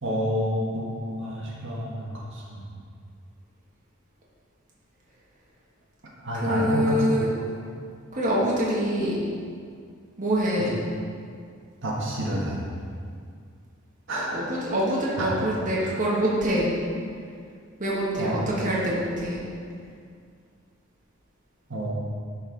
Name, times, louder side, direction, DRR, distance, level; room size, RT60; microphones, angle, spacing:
voice 1, 0.0-2.6 6.2-7.0 10.6-10.7 11.8-12.6 14.1-14.4 15.2-15.3 18.2-18.3 21.7-21.9, equal, 65° right, -4 dB, 1.6 m, -29 dB
voice 2, 6.3-7.3 8.1-9.2 10.2-10.7 14.3-16.7 17.8-19.4, equal, 40° right, -6 dB, 1.5 m, -25 dB
11.0 x 4.6 x 4.6 m, 2.2 s
head